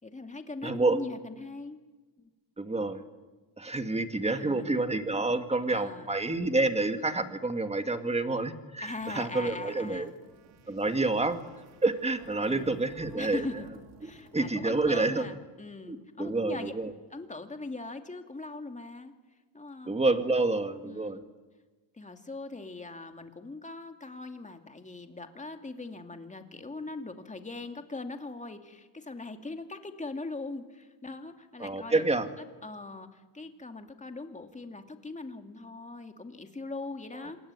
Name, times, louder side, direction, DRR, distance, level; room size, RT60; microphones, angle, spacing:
voice 1, 0.0-1.8 2.2-2.3 4.3-4.7 5.7-6.1 8.8-10.2 10.7-10.8 12.4-12.8 13.1-13.7 14.0-16.7 17.1-19.1 19.5-20.0 20.8-21.2 21.9-32.0 32.4-37.4, left 3 dB, 15° left, 6 dB, 2.5 m, -41 dB
voice 2, 0.6-1.0 2.6-3.0 3.6-10.1 10.7-11.4 11.8-13.5 14.0-15.3 15.9-16.9 19.9-21.2 31.6-32.3, right 2 dB, 15° right, 8 dB, 2.0 m, -28 dB
sound 1, 9.0-15.7, right 4 dB, 85° right, 4.5 m, -56 dB
27.0 x 21.0 x 9.7 m, 1.2 s
cardioid pair, 120°, 47 cm